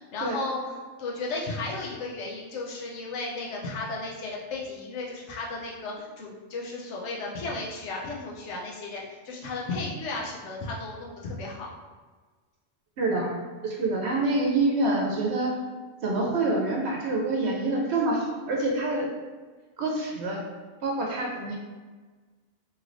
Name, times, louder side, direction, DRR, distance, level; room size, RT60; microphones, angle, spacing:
voice 1, 0.0-11.7, left 3 dB, 75° left, -3 dB, 1.0 m, -34 dB
voice 2, 13.0-13.3 13.6-15.6 16.0-19.1 19.8-20.4 20.8-21.6, right 2 dB, 70° right, -1 dB, 0.8 m, -26 dB
3.2 x 2.9 x 2.5 m, 1.4 s
omnidirectional pair, 1.2 m